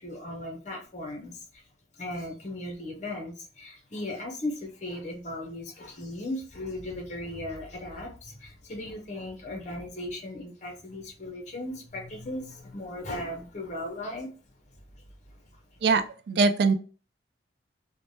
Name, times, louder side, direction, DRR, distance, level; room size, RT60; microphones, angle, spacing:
voice 1, 0.0-1.6 1.9-14.3 15.2-15.8, left 1 dB, 40° left, 2 dB, 0.7 m, -37 dB
voice 2, 15.8-16.7, right 4 dB, 60° right, 8 dB, 0.3 m, -22 dB
3.2 x 2.1 x 2.6 m, 0.37 s
head